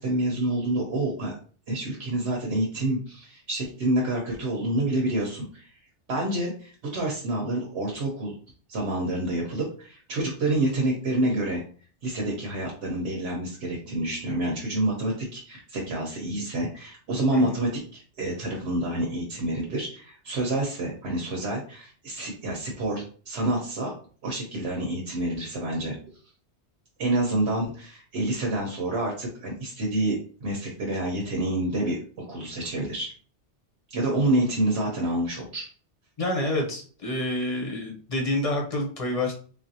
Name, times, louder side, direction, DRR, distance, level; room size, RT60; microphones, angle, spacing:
voice 1, 0.0-1.4 1.7-5.7 6.1-8.4 8.7-11.6 12.0-23.9 24.2-26.0 27.0-33.1 33.9-35.7, right 1 dB, 75° right, -1 dB, 1.1 m, -28 dB
voice 2, 36.2-39.3, left 1 dB, 35° left, 0 dB, 0.8 m, -28 dB
3.7 x 2.5 x 2.7 m, 0.43 s
omnidirectional pair, 1.2 m